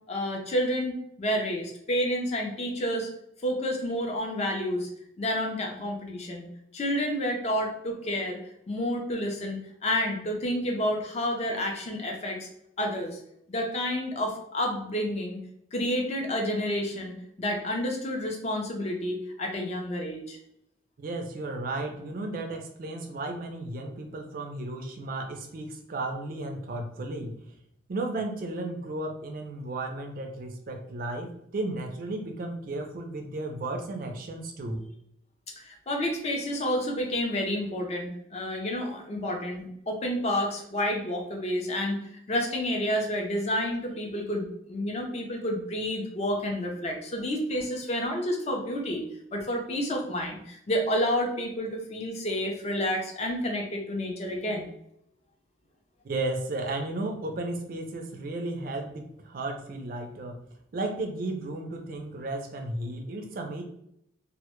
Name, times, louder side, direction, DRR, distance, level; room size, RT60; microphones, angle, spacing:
voice 1, 0.1-3.1 3.4-4.9 5.2-6.5 6.7-8.4 8.7-12.5 12.8-13.2 13.5-15.4 15.7-20.4 35.6-49.1 49.3-54.7, equal, 35° left, 2 dB, 0.4 m, -30 dB
voice 2, 21.0-27.3 27.9-34.8 56.0-60.4 60.7-63.6, right 2 dB, 45° right, 4 dB, 0.3 m, -34 dB
2.1 x 2.0 x 2.9 m, 0.76 s
head